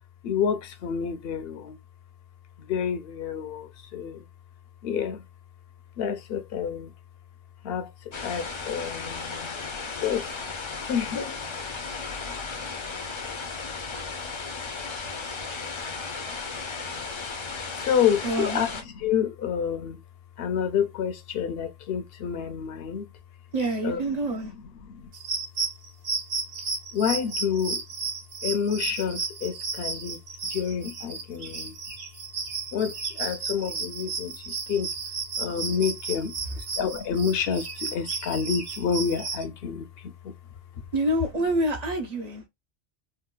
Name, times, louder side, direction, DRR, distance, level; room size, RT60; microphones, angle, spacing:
voice 1, 0.2-1.8 2.6-4.3 4.8-5.2 6.0-6.9 7.6-7.9 8.2-9.6 10.0-10.3 10.9-11.4 17.8-20.0 20.4-23.1 23.8-24.4 24.8-25.1 26.9-27.8 28.4-31.7 32.7-34.9 35.4-40.3, left 7 dB, 65° left, 0.8 m, -29 dB
sound 1, 8.1-18.8, left 4 dB, 40° left, 0.4 m, -35 dB
voice 2, 18.2-18.6 23.5-24.5 40.9-42.5, right 1 dB, 45° right, 0.7 m, -27 dB
sound 2, 25.1-39.4, right 5 dB, 70° right, 1.3 m, -33 dB
3.7 x 2.2 x 2.2 m
omnidirectional pair, 1.1 m